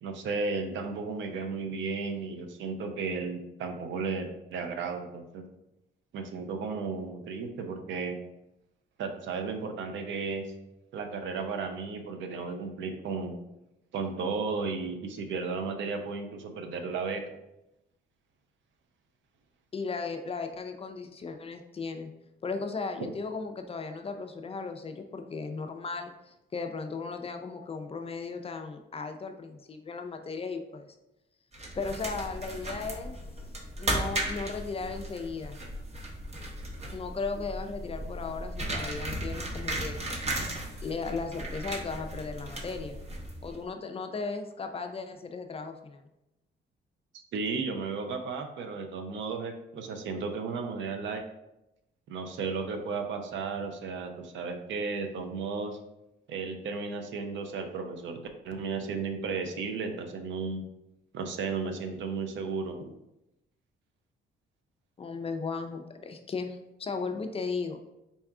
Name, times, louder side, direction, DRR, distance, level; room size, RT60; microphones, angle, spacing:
voice 1, 0.0-5.4 6.1-8.2 9.0-10.5 10.9-13.4 13.9-17.2 23.0-23.1 47.1-51.2 52.1-55.8 56.3-58.2 58.4-60.6 61.1-62.9, right 4 dB, 70° right, 5 dB, 0.6 m, -34 dB
voice 2, 19.7-22.1 22.4-31.0 31.8-33.2 33.8-35.6 36.9-40.0 40.8-43.0 43.4-46.1 65.0-67.8, left 4 dB, 30° left, 5 dB, 0.4 m, -36 dB
sound 1, 31.5-43.6, right 1 dB, 35° right, 0.8 m, -36 dB
4.1 x 2.3 x 3.6 m, 0.90 s
cardioid pair, 90°, 20 cm